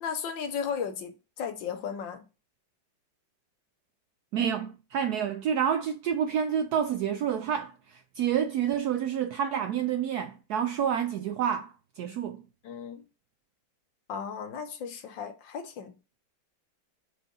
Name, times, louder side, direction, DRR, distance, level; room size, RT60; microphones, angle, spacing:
voice 1, 0.0-2.2 12.6-13.0 14.1-16.0, left 7 dB, 70° left, 1.6 m, -35 dB
voice 2, 4.3-12.4, right 8 dB, 75° right, 0.9 m, -29 dB
5.0 x 4.2 x 5.3 m
omnidirectional pair, 2.1 m